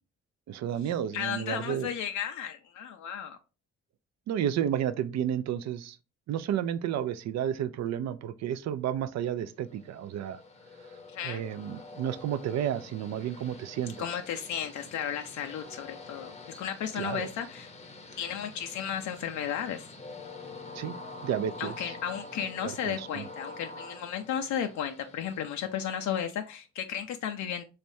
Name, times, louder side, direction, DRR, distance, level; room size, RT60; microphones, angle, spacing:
voice 1, 0.5-1.9 4.3-6.0 6.3-10.4 11.2-14.0 17.0-17.3 20.7-21.0 21.2-21.7 22.9-23.3, right 10 dB, 60° right, 0.4 m, -31 dB
voice 2, 1.1-3.4 11.1-11.4 14.0-17.7 18.2-19.9 21.6-27.6, left 9 dB, 70° left, 0.5 m, -34 dB
Train, 9.7-26.4, left 3 dB, 20° left, 0.7 m, -47 dB
3.3 x 3.2 x 2.6 m
cardioid pair, 90°, 30 cm